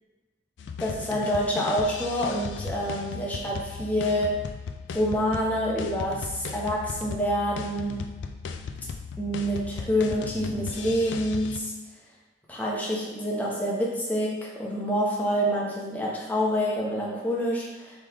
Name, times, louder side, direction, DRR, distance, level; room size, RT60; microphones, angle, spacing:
sound 1, 0.6-11.6, left 5 dB, 85° left, 0.3 m, -37 dB
voice 1, 0.8-4.4 4.9-8.1 9.2-11.7 12.5-17.9, equal, 10° left, -5 dB, 0.8 m, -27 dB
3.8 x 3.3 x 3.4 m, 1.2 s
head